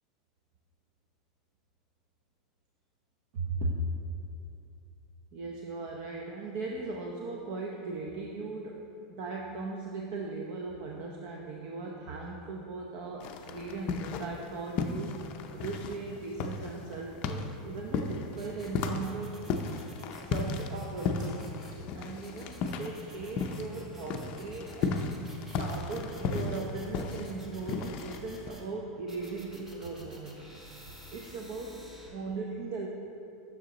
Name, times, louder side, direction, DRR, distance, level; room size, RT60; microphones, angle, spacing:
voice 1, 3.3-4.0 5.3-15.1 15.5-19.4 20.2-25.2 25.4-30.4 31.1-32.9, right 3 dB, 50° right, 0 dB, 0.7 m, -38 dB
sound 1, 13.2-14.5 14.8-23.8 24.0-28.5, left 4 dB, 40° left, 0.5 m, -34 dB
sound 2, 18.4-21.8 22.2-28.7 29.1-32.1, equal, 10° right, 1.0 m, -52 dB
9.1 x 6.6 x 4.1 m, 2.8 s
supercardioid pair, 155°, 3 cm